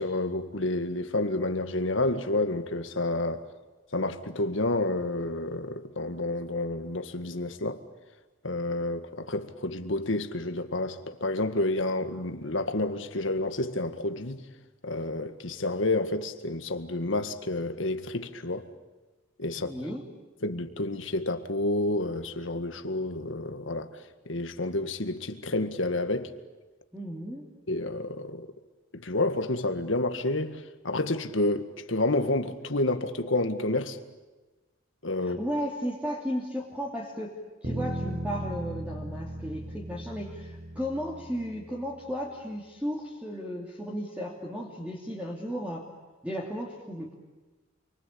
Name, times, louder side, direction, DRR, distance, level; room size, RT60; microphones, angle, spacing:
voice 1, 0.0-3.4 3.9-7.8 8.4-14.4 14.8-18.7 19.4-19.7 20.4-23.9 24.3-26.3 27.7-28.5 28.9-34.0 35.0-35.4, left 2 dB, 70° left, 1.9 m, -29 dB
voice 2, 19.6-20.1 26.9-27.5 35.2-45.9 46.2-47.2, equal, 5° right, 3.0 m, -35 dB
sound 1, 37.6-42.0, right 1 dB, 50° right, 6.4 m, -37 dB
28.5 x 24.0 x 8.7 m
head